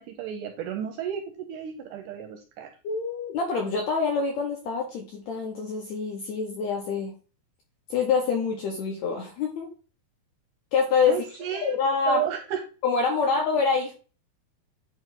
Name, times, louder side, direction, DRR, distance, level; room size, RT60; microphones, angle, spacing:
voice 1, 0.0-2.7 11.1-11.8 12.1-12.6, right 10 dB, 80° right, 4 dB, 1.9 m, -32 dB
voice 2, 2.8-7.1 7.9-9.7 10.7-11.2 11.6-12.2 12.8-13.9, left 5 dB, 75° left, 1 dB, 1.7 m, -26 dB
8.9 x 3.0 x 3.7 m, 0.36 s
omnidirectional pair, 4.2 m